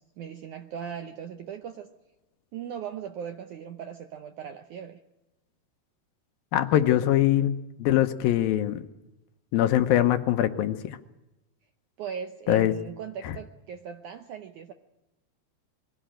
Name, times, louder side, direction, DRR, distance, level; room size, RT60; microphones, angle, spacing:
voice 1, 0.2-1.9 2.5-5.0 12.0-14.7, right 8 dB, 80° right, 8 dB, 1.8 m, -38 dB
voice 2, 6.5-8.8 9.5-11.0 12.5-12.7 13.2-13.4, left 12 dB, 75° left, 9 dB, 2.4 m, -23 dB
22.0 x 16.5 x 8.9 m, 0.98 s
omnidirectional pair, 4.6 m